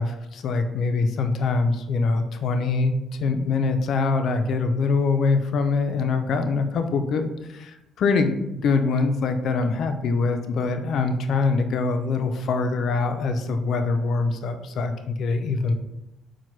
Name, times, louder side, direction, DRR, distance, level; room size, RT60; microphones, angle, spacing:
voice 1, 0.0-15.7, left 4 dB, 65° left, 7 dB, 0.4 m, -24 dB
5.7 x 2.2 x 3.1 m, 0.91 s
cardioid pair, 115°, 0 cm